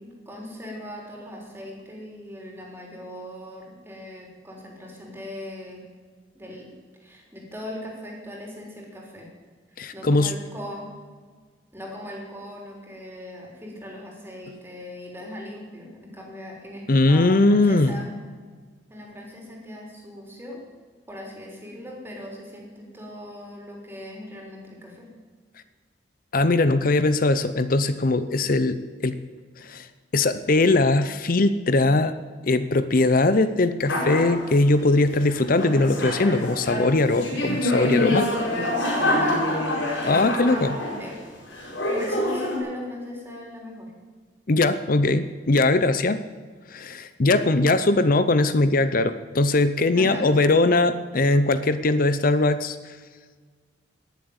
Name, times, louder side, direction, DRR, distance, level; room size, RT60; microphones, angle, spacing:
voice 1, 0.0-5.9 6.3-6.7 7.0-9.3 9.9-10.9 11.7-18.1 18.9-20.7 21.1-25.1 39.1-39.7 40.0-40.3 41.0-41.2 41.5-41.7 42.0-43.9 49.9-50.3, left 1 dB, 10° right, -1 dB, 3.7 m, -39 dB
voice 2, 9.8-10.3 16.9-18.0 26.3-29.2 29.6-29.9 30.1-32.2 32.4-38.3 40.0-40.8 44.5-46.2 46.7-53.0, left 2 dB, 45° left, 12 dB, 0.6 m, -20 dB
sound 1, 33.8-34.4 35.3-41.2 41.5-42.6, left 1 dB, 75° left, 4.9 m, -26 dB
19.0 x 7.6 x 8.8 m, 1.5 s
head